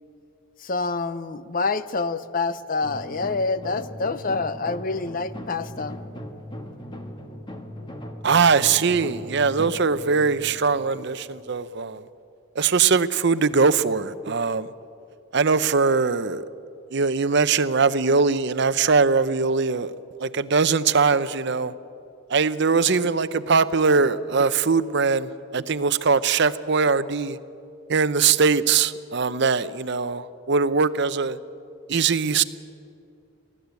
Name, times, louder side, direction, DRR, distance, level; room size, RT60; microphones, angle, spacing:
voice 1, 0.6-5.9, left 3 dB, 40° left, 0.7 m, -27 dB
sound 1, 2.8-11.6, equal, 25° left, 1.6 m, -39 dB
voice 2, 8.2-12.0 12.6-14.7 15.3-16.4 16.9-19.9 20.2-21.7 22.3-27.4 27.9-31.4 31.9-32.4, right 5 dB, 55° right, 0.7 m, -21 dB
23.5 x 16.0 x 8.2 m
head